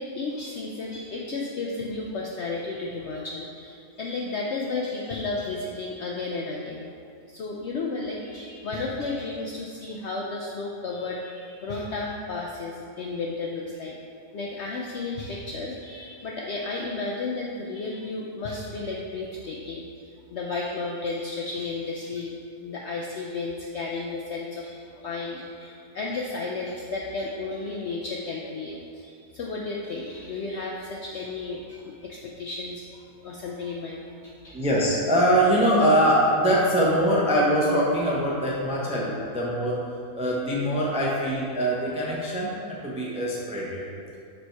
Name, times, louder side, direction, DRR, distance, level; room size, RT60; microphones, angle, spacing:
voice 1, 0.0-7.0 7.3-14.0 14.3-34.5, left 3 dB, 70° left, -2 dB, 0.6 m, -33 dB
voice 2, 34.5-39.8 40.1-43.8, equal, 10° right, -5 dB, 0.4 m, -23 dB
6.8 x 3.4 x 4.5 m, 2.5 s
omnidirectional pair, 1.6 m